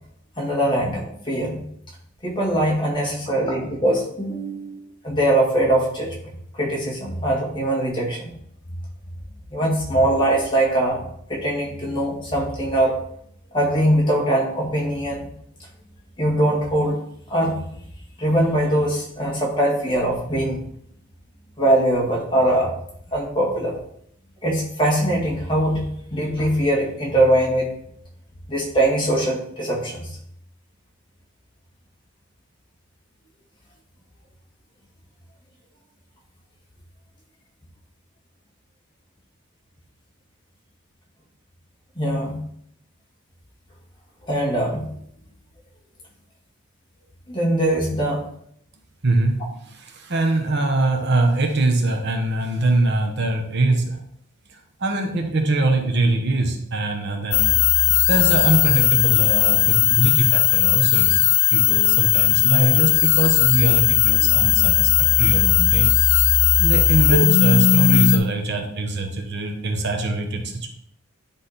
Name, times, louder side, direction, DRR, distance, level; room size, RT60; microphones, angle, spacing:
voice 1, 0.4-1.6 2.2-8.4 9.5-13.0 13.5-15.3 16.2-17.0 17.3-17.6 18.2-20.6 21.6-22.8 23.1-23.7 24.4-27.7 28.5-30.1 42.0-42.4 44.3-44.9 47.3-48.3, right 1 dB, 25° left, -3 dB, 1.9 m, -22 dB
voice 2, 49.0-54.0 54.5-57.5 57.9-61.2 61.5-65.9 66.6-70.7, right 2 dB, 55° right, 3 dB, 1.1 m, -23 dB
sound 1, 57.3-68.2, left 11 dB, 85° left, 0.8 m, -17 dB
10.0 x 3.6 x 4.2 m, 0.70 s
head